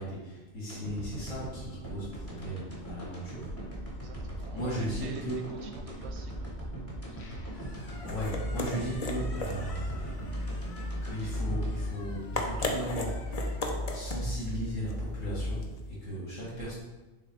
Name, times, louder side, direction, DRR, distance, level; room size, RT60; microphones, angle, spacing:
voice 1, 0.0-3.5 4.5-5.5 8.1-10.2 11.0-16.7, right 1 dB, 75° left, -7 dB, 2.8 m, -37 dB
sound 1, 0.7-12.9 13.3-13.4, right 1 dB, 10° left, 1.5 m, -41 dB
voice 2, 3.9-6.7, right 5 dB, 65° right, 5 dB, 0.8 m, -47 dB
Squeak, 7.0-15.2, left 2 dB, 55° left, 1.3 m, -53 dB
sound 2, 7.7-15.9, left 1 dB, 40° left, 0.6 m, -34 dB
6.7 x 3.4 x 4.7 m, 1.1 s
omnidirectional pair, 1.4 m